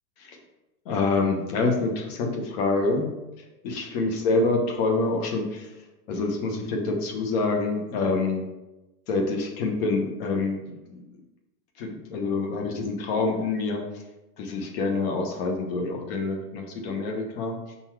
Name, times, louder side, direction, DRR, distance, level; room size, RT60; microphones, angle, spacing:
voice 1, 0.8-3.1 3.6-5.7 6.1-8.5 9.1-11.0 11.8-13.8 14.4-17.8, left 3 dB, 40° left, 2 dB, 1.1 m, -26 dB
5.8 x 4.0 x 4.6 m, 1.0 s
supercardioid pair, 160°, 48 cm